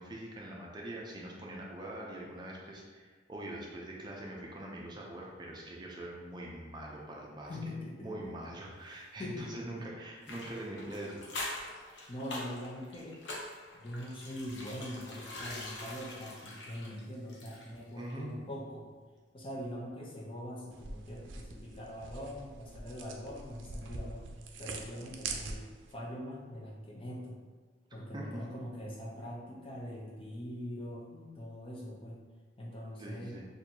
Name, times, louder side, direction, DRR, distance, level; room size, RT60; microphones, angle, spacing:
voice 1, 0.0-7.5 8.0-11.5 11.9-12.0 18.0-18.4 28.1-28.2 33.0-33.5, right 1 dB, 25° right, -2 dB, 0.5 m, -43 dB
voice 2, 7.5-8.3 9.2-9.9 12.1-13.2 13.7-18.9 19.3-24.3 24.6-25.6 25.9-27.4 27.9-32.2 32.6-33.4, equal, 30° left, -3 dB, 0.6 m, -42 dB
sound 1, 10.2-17.8 18.1-18.2, left 2 dB, 65° left, 0.8 m, -44 dB
sound 2, 20.7-25.9, right 3 dB, 90° right, 0.4 m, -44 dB
4.2 x 2.6 x 2.7 m, 1.4 s
head